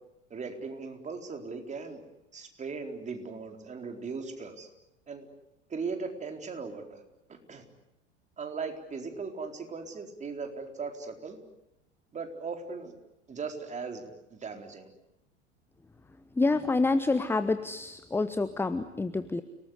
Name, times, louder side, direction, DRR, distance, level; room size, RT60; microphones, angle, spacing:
voice 1, 0.3-2.0 2.3-4.7 5.1-5.3 5.7-7.0 7.5-7.6 8.4-11.4 12.1-12.9 13.3-14.9, right 4 dB, 20° right, 4 dB, 4.2 m, -38 dB
voice 2, 16.4-19.4, left 3 dB, 5° left, 12 dB, 1.0 m, -27 dB
30.0 x 19.5 x 9.8 m, 0.90 s
figure-of-eight pair, 85°, 35 cm